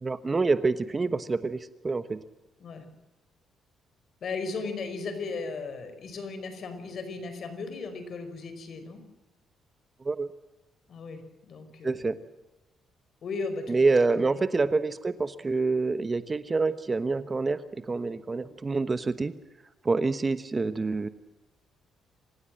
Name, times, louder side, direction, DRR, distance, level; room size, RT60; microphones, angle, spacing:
voice 1, 0.0-2.2 10.0-10.3 11.8-12.2 13.7-19.3 19.8-21.1, right 3 dB, 30° right, 13 dB, 1.1 m, -27 dB
voice 2, 4.2-9.0 10.9-12.0 13.2-13.8 14.2-14.3, left 4 dB, 55° left, 9 dB, 5.1 m, -36 dB
27.5 x 16.0 x 7.8 m, 1.0 s
cardioid pair, 90°, 0 cm